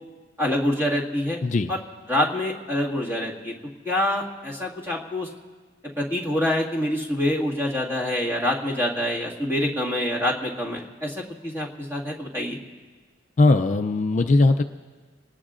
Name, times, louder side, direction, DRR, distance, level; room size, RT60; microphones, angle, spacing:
voice 1, 0.4-1.4 1.7-1.8 2.1-3.5 3.8-5.3 6.0-12.6, left 1 dB, 15° right, -4 dB, 1.9 m, -26 dB
voice 2, 13.4-14.6, left 2 dB, 40° left, 6 dB, 0.4 m, -19 dB
27.0 x 19.5 x 2.5 m, 1.4 s
head